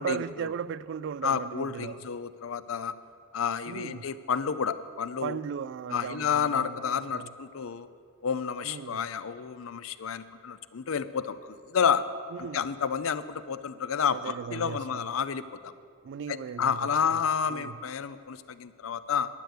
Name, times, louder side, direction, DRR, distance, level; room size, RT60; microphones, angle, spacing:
voice 1, 0.0-2.1 3.7-4.1 5.2-6.8 7.1-7.3 8.6-9.1 12.3-12.7 14.1-15.1 16.0-17.2 17.5-17.8, right 7 dB, 60° right, 0.3 m, -37 dB
voice 2, 1.2-2.9 3.3-5.4 5.9-7.9 8.2-12.0 12.5-15.7 16.3-19.3, left 7 dB, 80° left, 0.5 m, -30 dB
12.5 x 6.6 x 9.4 m
head